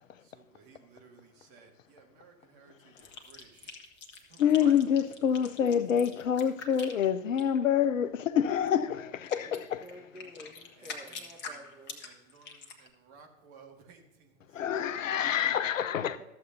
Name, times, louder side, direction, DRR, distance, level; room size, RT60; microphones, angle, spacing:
voice 1, 0.2-3.8 4.2-4.8 10.8-11.8 12.0-14.6, right 5 dB, 40° right, 1.9 m, -56 dB
sound 1, 3.0-7.6 8.7-8.8 9.2-12.9, left 4 dB, 25° left, 1.4 m, -45 dB
voice 2, 4.4-9.8 14.5-16.2, left 8 dB, 65° left, 0.6 m, -27 dB
voice 3, 9.5-12.0 16.2-16.3, equal, 5° right, 0.7 m, -50 dB
13.0 x 7.7 x 2.7 m
figure-of-eight pair, 100°, 42 cm